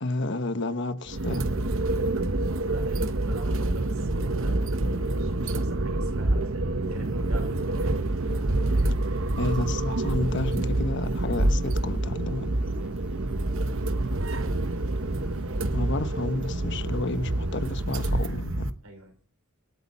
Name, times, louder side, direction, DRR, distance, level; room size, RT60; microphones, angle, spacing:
voice 1, 0.0-1.5 9.4-12.5 15.7-18.7, left 2 dB, 55° left, 1.1 m, -31 dB
sound 1, 1.1-18.7, right 2 dB, 65° right, 1.0 m, -27 dB
voice 2, 1.9-7.8 8.8-9.0 18.8-19.1, right 2 dB, 80° right, 5.3 m, -46 dB
sound 2, 7.8-17.8, right 1 dB, 5° right, 2.2 m, -53 dB
26.0 x 8.7 x 4.3 m
head